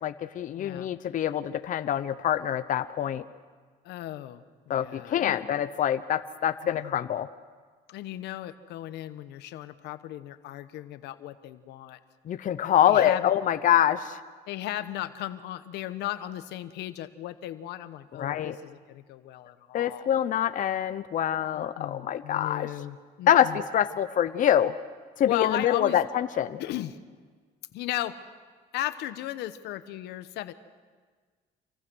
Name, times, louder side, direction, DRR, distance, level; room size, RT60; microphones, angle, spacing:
voice 1, 0.0-3.2 4.7-7.3 12.3-14.2 18.2-18.6 19.7-22.7 23.3-24.7 25.2-26.6, left 10 dB, 50° left, 10 dB, 0.8 m, -25 dB
voice 2, 0.6-0.9 3.8-5.4 6.6-7.1 7.9-12.0 12.8-13.3 14.5-20.1 21.5-23.6 25.2-26.0 26.6-27.0 27.7-28.2 28.7-30.5, left 14 dB, 85° left, 12 dB, 1.1 m, -36 dB
28.0 x 23.0 x 6.3 m, 1.5 s
cardioid pair, 110°, 17 cm